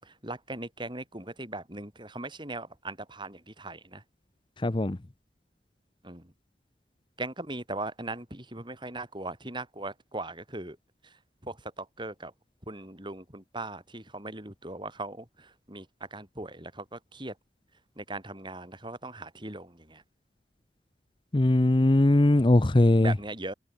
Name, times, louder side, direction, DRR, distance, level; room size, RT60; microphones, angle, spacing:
voice 1, 0.0-4.0 6.0-6.3 7.2-10.8 11.0-12.3 12.6-17.4 18.0-20.0 23.0-23.5, right 2 dB, 25° right, 7.3 m, -39 dB
voice 2, 4.6-5.0 21.3-23.1, left 1 dB, 25° left, 0.7 m, -20 dB
head